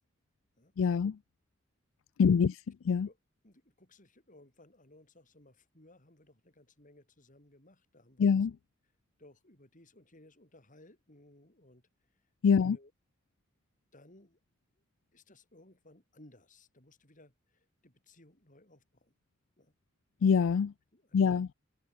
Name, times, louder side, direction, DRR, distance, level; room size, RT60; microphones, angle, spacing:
voice 1, 0.8-1.2 2.2-2.5 2.9-3.1 8.2-8.5 12.4-12.8 20.2-20.7 21.1-21.5, left 6 dB, 90° left, 0.4 m, -24 dB
voice 2, 3.4-8.5 9.2-12.2 12.6-12.9 13.9-14.4 14.8-14.9 15.1-19.1 19.6-19.7 20.9-21.3, left 1 dB, 40° left, 6.7 m, -60 dB
head